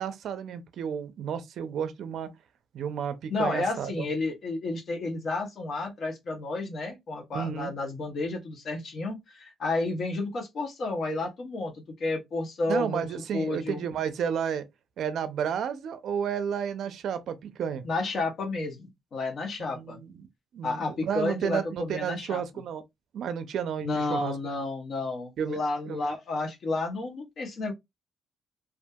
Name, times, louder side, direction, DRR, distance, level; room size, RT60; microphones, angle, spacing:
voice 1, 0.0-2.3 2.7-4.1 7.3-7.7 12.7-14.7 15.0-17.8 19.6-20.2 20.5-22.8 23.1-24.3 25.4-26.2, right 8 dB, 70° right, 0.4 m, -32 dB
voice 2, 3.3-13.1 13.3-13.8 17.8-20.0 20.6-22.4 23.8-27.7, left 2 dB, 55° left, 0.8 m, -31 dB
2.6 x 2.4 x 2.2 m
cardioid pair, 90°, 0 cm